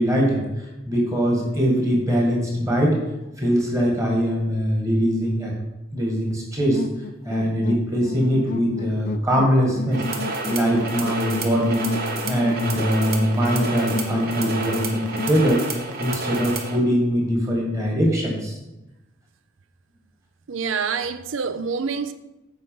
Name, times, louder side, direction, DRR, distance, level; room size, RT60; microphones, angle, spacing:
voice 1, 0.0-3.0 3.4-5.5 5.9-6.8 7.3-10.0 10.5-11.9 12.3-15.6 16.0-18.6, equal, 15° right, 1.8 m, -22 dB
sound 1, 6.7-15.4, left 3 dB, 40° left, 0.3 m, -32 dB
sound 2, 9.9-16.8, right 3 dB, 50° right, 1.0 m, -30 dB
voice 2, 20.5-22.1, right 5 dB, 75° right, 0.5 m, -26 dB
8.2 x 4.8 x 5.4 m
head